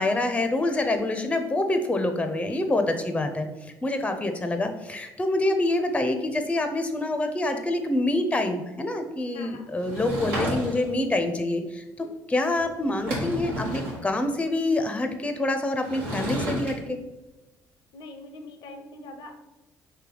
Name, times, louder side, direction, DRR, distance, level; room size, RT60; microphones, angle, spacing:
voice 1, 0.0-3.5 3.8-17.0, left 2 dB, 15° left, 7 dB, 0.5 m, -26 dB
voice 2, 9.3-9.7 12.0-12.1 17.9-19.3, left 2 dB, 70° left, 5 dB, 0.5 m, -43 dB
Sliding door / Wood, 9.8-11.0 12.5-12.6 12.9-14.0 15.8-16.7, equal, 85° right, 1.0 m, -31 dB
3.3 x 2.7 x 3.8 m, 1.1 s
supercardioid pair, 65°, 8 cm